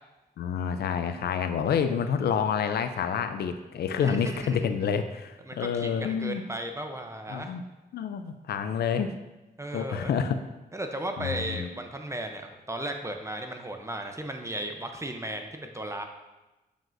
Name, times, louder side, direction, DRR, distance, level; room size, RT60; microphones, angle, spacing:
voice 1, 0.4-6.4 7.3-7.6 7.9-9.1 9.7-10.4 11.2-11.7, left 7 dB, 80° left, 9 dB, 0.4 m, -28 dB
voice 2, 4.0-4.6 5.5-7.5 9.6-10.2 10.7-16.0, right 1 dB, 15° right, 4 dB, 0.6 m, -35 dB
7.6 x 5.0 x 2.6 m, 1.1 s
cardioid pair, 75°, 17 cm